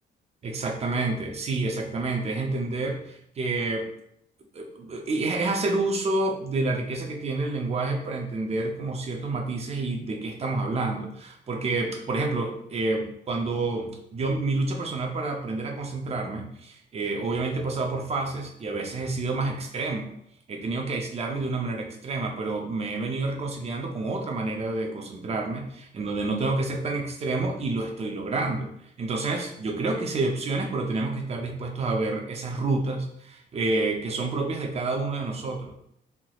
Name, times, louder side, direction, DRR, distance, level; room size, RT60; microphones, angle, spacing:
voice 1, 0.4-3.9 4.5-20.1 20.5-28.7 29.0-35.7, right 3 dB, 30° right, 2 dB, 0.5 m, -29 dB
3.3 x 2.8 x 2.3 m, 0.74 s
cardioid pair, 145°, 20 cm